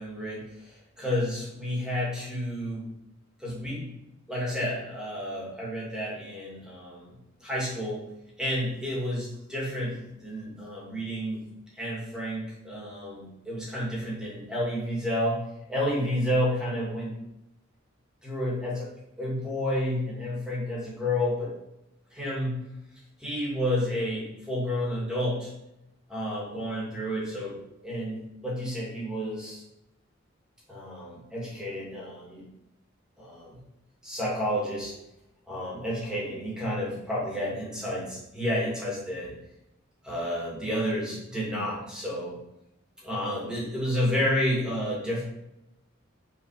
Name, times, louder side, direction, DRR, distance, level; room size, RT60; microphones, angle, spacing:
voice 1, 0.0-2.8 3.4-3.9 4.3-7.1 7.4-8.1 8.4-11.4 11.7-17.1 18.2-18.9 19.2-21.6 22.1-22.7 23.2-25.5 26.1-27.6 27.8-29.6 30.7-32.4 33.2-33.6 34.0-34.9 35.5-39.3 40.0-42.4 43.0-45.2, equal, 5° right, -6 dB, 2.6 m, -30 dB
5.7 x 4.6 x 5.1 m, 0.87 s
head